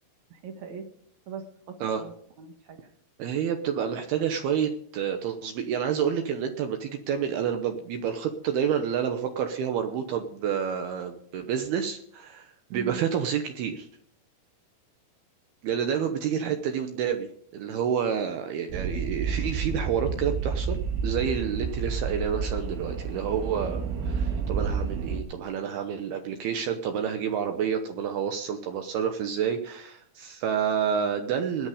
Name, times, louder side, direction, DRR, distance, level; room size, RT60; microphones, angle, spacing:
voice 1, 0.3-0.9 1.3-2.9 12.7-13.0 16.4-16.6, right 6 dB, 55° right, 6 dB, 2.1 m, -41 dB
voice 2, 3.2-13.9 15.6-17.3 17.5-31.7, right 8 dB, 70° right, 6 dB, 2.5 m, -29 dB
sound 1, 18.7-25.2, right 5 dB, 90° right, 4.3 m, -30 dB
17.5 x 10.5 x 5.0 m, 0.65 s
omnidirectional pair, 5.3 m